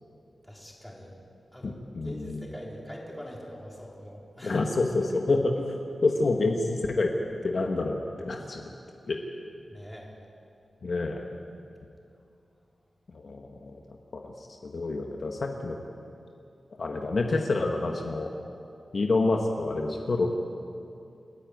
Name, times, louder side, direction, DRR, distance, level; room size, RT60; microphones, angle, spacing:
voice 1, 0.4-1.2 1.5-4.6 9.7-10.1, equal, 5° left, -2 dB, 3.7 m, -43 dB
voice 2, 1.6-2.5 4.4-5.8 6.0-7.1 7.4-8.7 9.1-9.2 10.8-11.3 13.1-13.7 14.1-14.3 14.6-15.8 16.8-18.3 18.9-20.3, left 3 dB, 55° left, 2 dB, 1.5 m, -28 dB
29.0 x 10.5 x 9.4 m, 2.6 s
wide cardioid pair, 130°, 0 cm